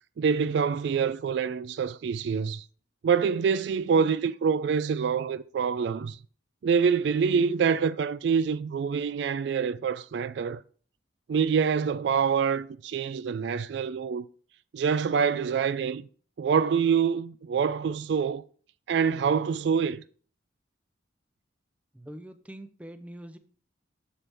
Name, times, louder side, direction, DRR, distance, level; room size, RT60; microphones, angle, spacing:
voice 1, 0.2-2.6 3.0-6.2 6.6-10.6 11.3-14.3 14.7-16.1 16.4-18.4 18.9-20.0, right 6 dB, 65° right, 0.3 m, -26 dB
voice 2, 21.9-23.4, right 1 dB, 5° right, 0.5 m, -44 dB
7.1 x 7.0 x 3.4 m
head